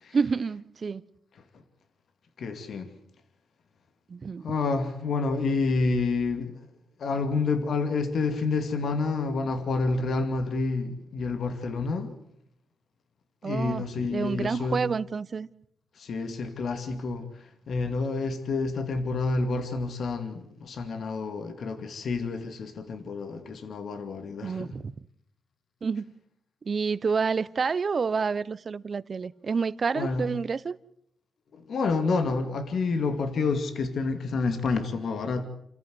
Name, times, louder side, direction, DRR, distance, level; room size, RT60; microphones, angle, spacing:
voice 1, 0.1-1.0 4.1-4.5 13.4-15.5 24.4-24.9 25.8-26.1 26.6-30.8, right 5 dB, 50° right, 0.8 m, -29 dB
voice 2, 2.4-2.9 4.4-6.6 7.0-12.1 13.4-14.8 16.0-17.3 17.7-24.7 29.9-30.2 31.5-35.4, left 3 dB, 70° left, 2.4 m, -29 dB
28.5 x 14.5 x 7.9 m
cardioid pair, 70°, 0 cm